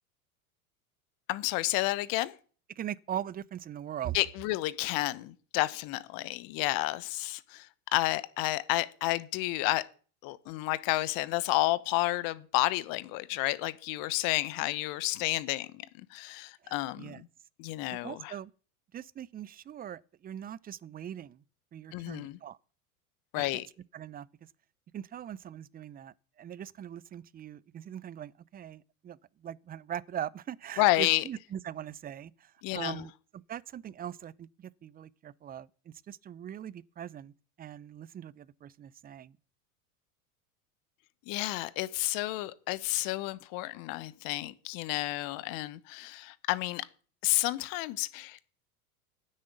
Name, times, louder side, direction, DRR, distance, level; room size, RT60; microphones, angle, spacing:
voice 1, 1.3-2.4 4.1-7.7 7.9-9.8 10.2-17.3 17.6-18.3 21.9-22.4 23.3-23.7 30.8-31.2 32.6-33.0 41.3-46.8 47.2-48.4, left 18 dB, 50° left, 1.1 m, -31 dB
voice 2, 2.8-4.2 16.6-17.2 17.9-18.5 18.9-21.4 21.7-22.6 23.5-23.6 23.9-24.5 24.9-37.3 37.6-39.4, right 10 dB, 20° right, 0.6 m, -41 dB
9.9 x 7.3 x 9.2 m
hypercardioid pair, 90°, 43 cm